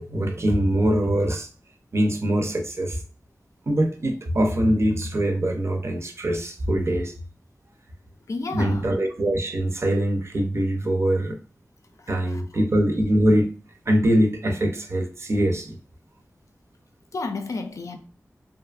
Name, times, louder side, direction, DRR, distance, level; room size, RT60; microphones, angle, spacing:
voice 1, 0.0-1.5 1.9-3.0 3.7-7.1 8.5-11.4 12.1-13.5 13.9-15.8, right 1 dB, 55° right, 0.5 m, -23 dB
voice 2, 8.3-8.9 12.0-12.4 17.1-18.0, left 3 dB, 70° left, 0.4 m, -31 dB
2.6 x 2.4 x 2.3 m
wide cardioid pair, 80°, 6 cm